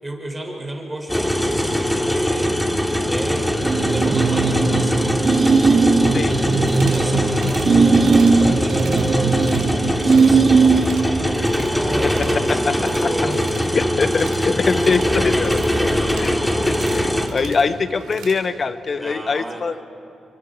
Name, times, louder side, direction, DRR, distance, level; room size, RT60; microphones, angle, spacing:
voice 1, 0.0-2.6 3.1-3.5 3.9-5.3 5.7-6.3 6.8-9.5 9.8-13.5 19.0-19.7, right 1 dB, 15° right, 1 dB, 6.3 m, -33 dB
sound 1, 1.1-17.3, equal, 5° left, 2.8 m, -22 dB
sound 2, 3.6-11.1, right 4 dB, 50° right, 1.9 m, -17 dB
sound 3, 6.7-7.1 7.4-7.7 8.0-8.4 8.7-9.7 9.9-10.4 10.6-11.7 12.0-18.4, right 7 dB, 80° right, 3.3 m, -40 dB
voice 2, 12.0-13.1 13.7-15.6 16.1-16.4 16.6-19.7, left 4 dB, 50° left, 11 dB, 1.1 m, -23 dB
30.0 x 24.5 x 4.7 m, 2.4 s
supercardioid pair, 45°, 0 cm